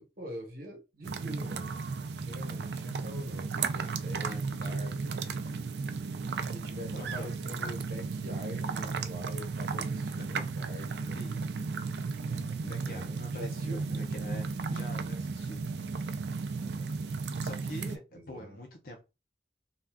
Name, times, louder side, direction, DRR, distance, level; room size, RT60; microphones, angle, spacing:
voice 1, 0.0-5.4 6.4-11.3 12.8-13.8 16.6-16.9 18.1-18.6, equal, 55° right, 1.0 m, -44 dB
sound 1, 1.0-18.0, right 4 dB, 75° right, 0.4 m, -34 dB
voice 2, 4.1-4.8 6.4-6.5 6.9-7.3 9.7-9.9 10.4-10.5 11.1-11.4 12.3-15.6 17.3-19.0, left 1 dB, 55° left, 0.6 m, -45 dB
2.7 x 2.3 x 3.4 m
head